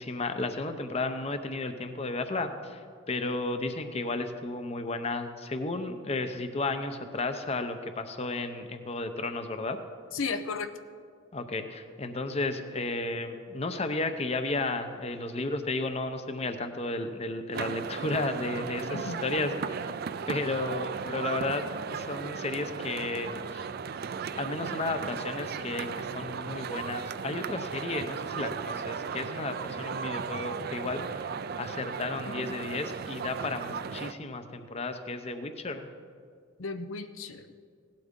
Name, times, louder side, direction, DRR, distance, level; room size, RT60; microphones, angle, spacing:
voice 1, 0.0-9.8 11.3-20.0 20.3-23.7 24.3-35.9, left 2 dB, 30° left, 8 dB, 0.6 m, -33 dB
voice 2, 10.1-10.7 18.9-19.2 32.2-32.7 36.6-37.5, left 4 dB, 85° left, 9 dB, 0.6 m, -35 dB
sound 1, 17.5-34.1, right 6 dB, 50° right, 0.4 m, -36 dB
17.0 x 11.5 x 3.7 m, 2.1 s
head